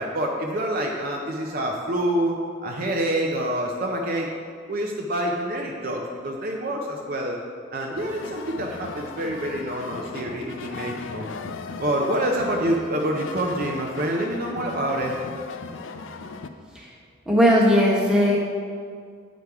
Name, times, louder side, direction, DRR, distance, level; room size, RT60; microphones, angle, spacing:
voice 1, 0.0-2.3 2.6-4.3 4.7-7.4 7.7-11.3 11.8-15.2, right 1 dB, 45° right, 0 dB, 0.6 m, -27 dB
sound 1, 8.0-16.5, left 4 dB, 70° left, 0.4 m, -37 dB
voice 2, 17.3-18.4, equal, 5° right, -5 dB, 1.2 m, -18 dB
8.3 x 5.1 x 4.7 m, 2.1 s
head